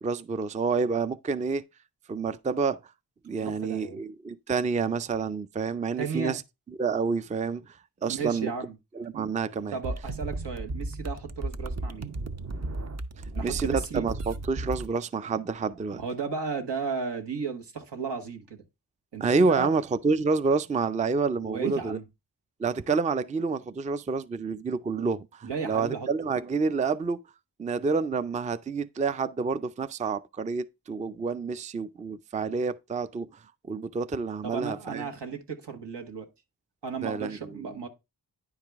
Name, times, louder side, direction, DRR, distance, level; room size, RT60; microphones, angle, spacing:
voice 1, 0.0-1.6 2.1-2.8 3.2-6.4 6.8-7.6 8.0-8.5 9.0-9.8 13.4-16.0 19.2-22.0 22.6-27.2 27.6-33.3 33.7-35.1 37.0-37.4, right 4 dB, 20° right, 0.4 m, -28 dB
voice 2, 3.4-4.0 6.0-6.4 8.1-8.7 9.1-9.3 9.7-12.1 13.3-14.0 15.9-18.6 19.1-19.7 21.4-22.1 25.4-26.1 34.4-36.3 36.8-37.9, right 5 dB, 85° right, 1.6 m, -34 dB
sound 1, 9.8-14.9, right 2 dB, 40° right, 0.7 m, -34 dB
9.8 x 4.8 x 3.4 m
wide cardioid pair, 85°, 41 cm